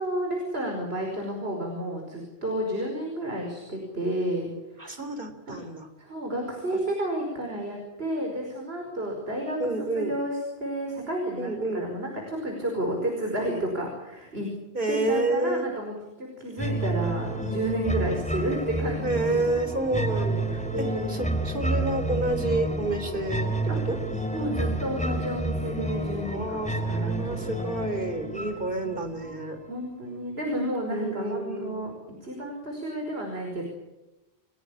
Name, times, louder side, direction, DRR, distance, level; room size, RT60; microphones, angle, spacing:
voice 1, 0.0-5.0 5.5-5.6 6.0-14.5 14.9-19.4 20.1-21.3 23.7-23.8 24.3-27.9 29.7-31.9 32.2-33.6, right 1 dB, 75° right, 1 dB, 5.6 m, -31 dB
voice 2, 4.8-5.9 9.6-10.1 11.4-11.9 14.7-15.7 19.0-20.6 21.1-23.5 23.9-24.0 26.3-29.6 30.9-31.8, right 2 dB, 55° right, 7 dB, 3.7 m, -29 dB
sound 1, 16.6-29.6, right 1 dB, 5° left, 3.4 m, -30 dB
30.0 x 17.5 x 8.7 m, 0.99 s
omnidirectional pair, 1.1 m